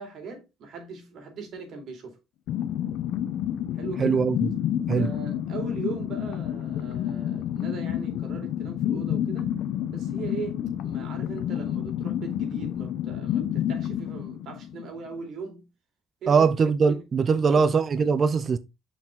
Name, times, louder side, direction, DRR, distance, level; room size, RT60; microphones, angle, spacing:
voice 1, 0.0-2.2 3.7-4.3 5.0-9.5 9.9-15.7 16.2-16.5 16.9-17.0 17.5-17.7, right 5 dB, 60° right, 4.0 m, -39 dB
sound 1, 2.5-15.1, left 10 dB, 75° left, 1.0 m, -29 dB
voice 2, 4.0-4.4 4.9-5.1 16.3-18.6, right 5 dB, 40° right, 0.6 m, -21 dB
6.8 x 6.1 x 3.9 m
cardioid pair, 105°, 0 cm